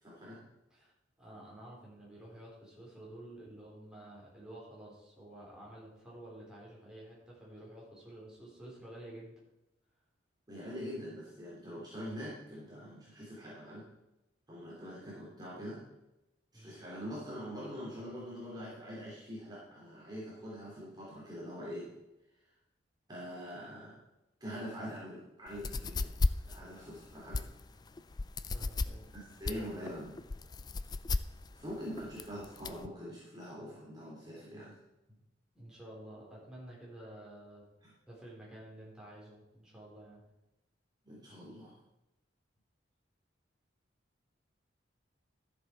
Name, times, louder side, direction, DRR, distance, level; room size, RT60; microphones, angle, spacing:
voice 1, 0.0-0.4 10.5-13.9 14.5-15.8 16.5-21.9 23.1-24.0 24.4-26.1 26.4-27.4 29.1-30.2 31.5-34.7 37.8-37.9 41.0-41.7, equal, 20° right, -7 dB, 2.9 m, -44 dB
voice 2, 1.2-9.3 16.5-16.8 28.4-29.1 35.5-37.6 38.1-40.2, right 1 dB, 5° right, -6 dB, 3.7 m, -51 dB
sound 1, 25.5-32.9, left 3 dB, 20° left, 0.3 m, -35 dB
13.0 x 7.4 x 4.6 m, 0.93 s
head